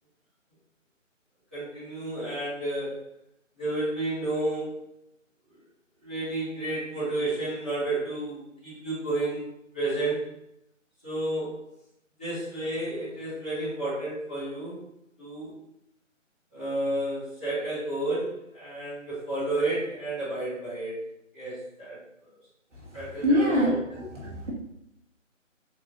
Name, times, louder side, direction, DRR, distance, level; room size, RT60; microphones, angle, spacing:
voice 1, 1.5-3.0 3.6-4.7 6.0-9.5 9.7-10.3 11.0-11.7 12.2-14.8 15.2-15.5 16.5-21.0 21.3-22.0 22.2-22.4 22.9-23.7, right 2 dB, 10° left, -17 dB, 0.9 m, -31 dB
voice 2, 23.2-24.5, equal, 65° right, -4 dB, 1.4 m, -25 dB
5.8 x 2.4 x 2.9 m, 0.80 s
figure-of-eight pair, 155°, 39 cm